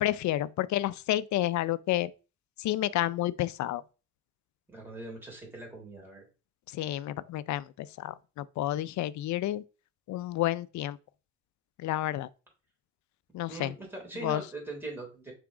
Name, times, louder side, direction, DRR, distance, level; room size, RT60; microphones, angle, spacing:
voice 1, 0.0-2.1 2.6-3.8 6.7-9.6 10.1-11.0 11.8-12.3 13.3-13.7 14.2-14.4, left 14 dB, 70° left, 0.5 m, -30 dB
voice 2, 4.7-6.2 13.5-15.3, right 2 dB, 5° right, 3.3 m, -41 dB
5.9 x 3.6 x 4.7 m
cardioid pair, 90°, 30 cm